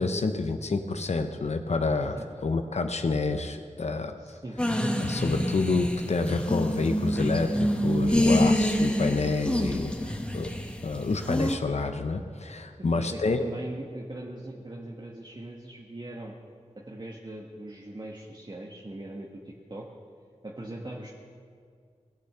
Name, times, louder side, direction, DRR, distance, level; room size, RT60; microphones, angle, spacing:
voice 1, 0.0-2.2 2.4-4.4 5.0-10.5 10.8-13.4, left 3 dB, 60° left, 7 dB, 0.7 m, -28 dB
voice 2, 4.2-4.6 12.9-16.3 16.7-19.9 20.4-21.1, right 1 dB, 35° right, -2 dB, 1.3 m, -40 dB
sound 1, 4.6-11.6, equal, 10° left, 1.2 m, -26 dB
18.5 x 6.6 x 6.7 m, 2.1 s
cardioid pair, 45°, 12 cm